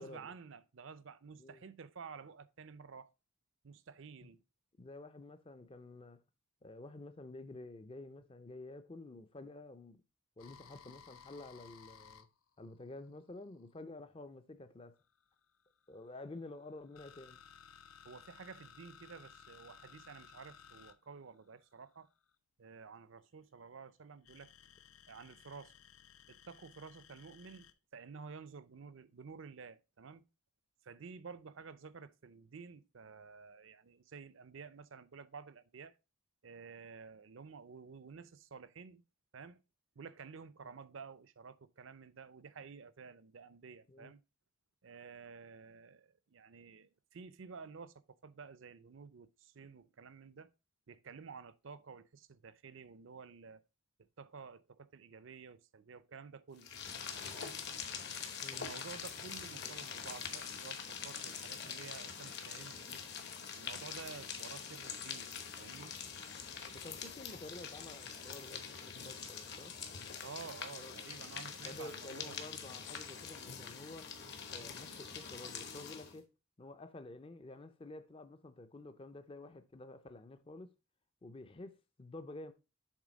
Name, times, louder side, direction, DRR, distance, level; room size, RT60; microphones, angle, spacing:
voice 1, 0.0-3.1 3.6-4.4 18.0-22.1 22.6-24.5 25.1-25.7 26.3-30.2 30.8-35.9 36.4-39.0 39.3-39.6 40.0-44.2 44.8-50.5 50.9-53.6 54.2-56.7 57.3-57.6 58.5-63.0 63.6-65.3 65.6-66.0 70.2-72.4, right 5 dB, 60° right, 0.5 m, -52 dB
voice 2, 4.8-6.2 6.6-10.0 10.4-12.3 12.6-14.9 15.9-17.4 43.9-44.1 58.4-58.7 66.7-69.7 70.8-71.0 71.6-74.1 74.5-76.3 76.6-80.7 81.2-82.5, left 2 dB, 25° left, 0.5 m, -50 dB
sound 1, 10.4-13.8 14.9-22.3 24.2-27.7, left 7 dB, 80° left, 0.6 m, -58 dB
sound 2, 56.6-76.2, left 6 dB, 50° left, 1.1 m, -45 dB
7.4 x 3.4 x 5.0 m
head